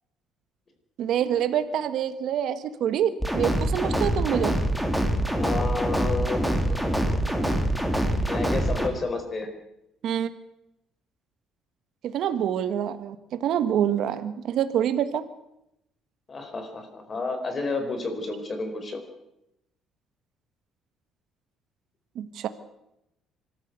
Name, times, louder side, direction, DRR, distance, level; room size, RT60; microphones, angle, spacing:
voice 1, 1.0-4.6 10.0-10.3 12.0-15.2 22.1-22.5, right 9 dB, 65° right, 11 dB, 1.5 m, -26 dB
sound 1, 3.2-8.9, right 1 dB, ahead, 2.7 m, -25 dB
voice 2, 5.4-7.4 8.2-9.5 16.3-19.0, left 3 dB, 30° left, 6 dB, 4.6 m, -31 dB
25.0 x 14.0 x 8.2 m, 0.85 s
cardioid pair, 135°, 0 cm